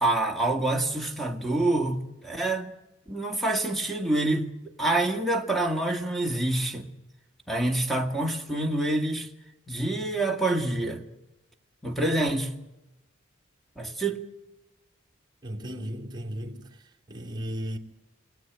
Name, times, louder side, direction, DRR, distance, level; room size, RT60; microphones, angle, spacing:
voice 1, 0.0-2.7 3.1-4.5 4.8-6.9 7.5-9.3 9.7-11.0 11.8-12.5 13.8-14.2, right 2 dB, ahead, 1.7 m, -26 dB
voice 2, 15.4-16.7 17.1-17.8, equal, 20° right, 2.8 m, -35 dB
26.5 x 20.0 x 9.1 m
head